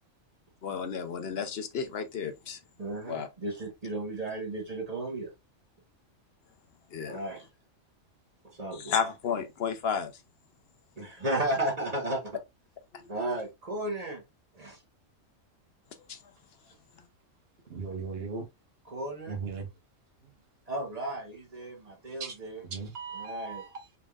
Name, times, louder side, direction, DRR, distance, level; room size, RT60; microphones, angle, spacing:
voice 1, 0.6-2.6 3.1-3.3 6.9-7.2 8.7-10.1 16.1-16.2, left 6 dB, 55° left, 0.9 m, -32 dB
voice 2, 2.8-5.3 7.1-7.5 8.5-8.9 11.0-12.4 13.1-14.2 14.5-14.8 18.9-19.4 20.7-22.6 23.1-23.7, right 1 dB, 30° right, 1.1 m, -34 dB
voice 3, 17.7-18.5 19.3-19.7 22.2-22.4 22.6-23.9, right 4 dB, 55° right, 1.2 m, -37 dB
4.1 x 3.4 x 2.3 m
omnidirectional pair, 1.3 m